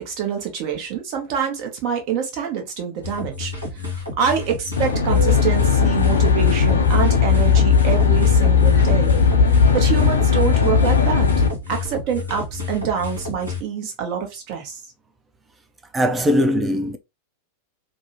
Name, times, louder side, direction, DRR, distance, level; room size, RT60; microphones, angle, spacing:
voice 1, 0.0-3.5 4.2-9.2 9.7-11.3 11.7-14.8, right 7 dB, 40° right, 0.8 m, -26 dB
sound 1, 3.0-13.6, left 3 dB, 85° right, 1.0 m, -31 dB
Aircraft, 4.8-11.5, left 6 dB, 70° left, 0.4 m, -17 dB
voice 2, 15.9-17.0, equal, 15° right, 0.4 m, -20 dB
2.6 x 2.1 x 2.7 m
figure-of-eight pair, 90°, 0 cm